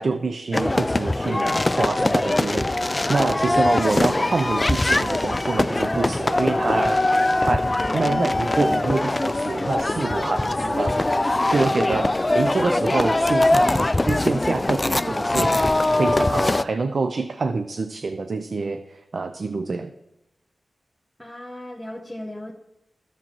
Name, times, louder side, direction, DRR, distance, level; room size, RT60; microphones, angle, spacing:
voice 1, 0.0-7.0 7.4-11.1 11.5-19.9, right 3 dB, 65° right, 8 dB, 0.5 m, -26 dB
sound 1, 0.5-16.6, left 2 dB, 30° left, 0.4 m, -22 dB
voice 2, 7.8-8.1 11.9-12.2 21.2-22.5, left 1 dB, ahead, -3 dB, 1.3 m, -37 dB
12.5 x 7.2 x 3.0 m, 0.91 s
cardioid pair, 40°, 0 cm